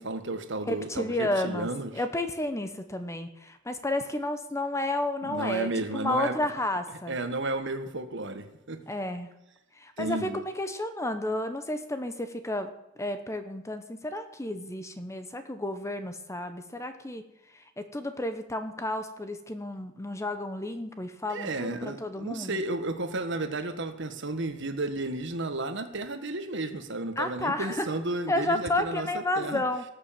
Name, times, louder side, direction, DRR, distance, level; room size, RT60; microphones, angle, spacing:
voice 1, 0.0-1.9 5.2-6.4 7.1-8.8 10.0-10.4 21.3-29.6, right 2 dB, 60° right, 8 dB, 1.5 m, -33 dB
voice 2, 0.7-7.2 8.9-9.3 9.8-12.7 13.0-17.2 17.5-22.6 27.2-27.9 28.3-29.8, left 1 dB, 15° left, 9 dB, 1.0 m, -31 dB
18.5 x 7.1 x 7.5 m, 0.92 s
head